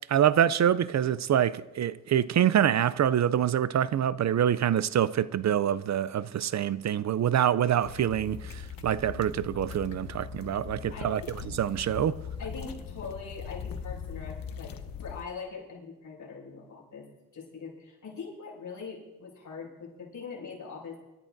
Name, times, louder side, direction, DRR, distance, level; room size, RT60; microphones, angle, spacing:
voice 1, 0.1-11.2 11.5-12.2, right 10 dB, 55° right, 0.4 m, -25 dB
sound 1, 7.8-15.2, left 7 dB, 90° left, 0.9 m, -40 dB
voice 2, 12.4-21.0, left 5 dB, 70° left, 6.1 m, -42 dB
26.5 x 13.5 x 2.6 m
wide cardioid pair, 115°, 33 cm